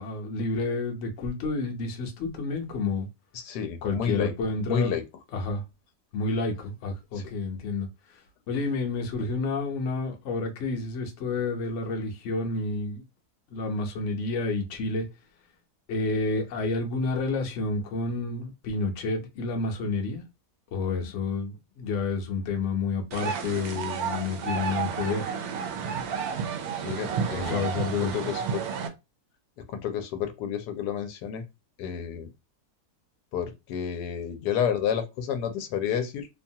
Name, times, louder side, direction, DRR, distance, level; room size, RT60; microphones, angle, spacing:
voice 1, 0.0-3.1 3.8-4.9 5.3-5.6 6.1-8.2 8.5-13.0 13.5-15.1 15.9-20.2 20.7-25.3 27.3-28.3, left 3 dB, 60° left, 0.9 m, -30 dB
voice 2, 3.3-4.3 4.7-5.0 7.1-7.3 26.8-27.7 28.1-28.7 29.7-31.4 31.8-32.3 33.3-36.3, left 8 dB, 85° left, 1.1 m, -30 dB
sound 1, 23.1-28.9, right 6 dB, 75° right, 1.0 m, -31 dB
2.8 x 2.3 x 2.7 m
omnidirectional pair, 1.7 m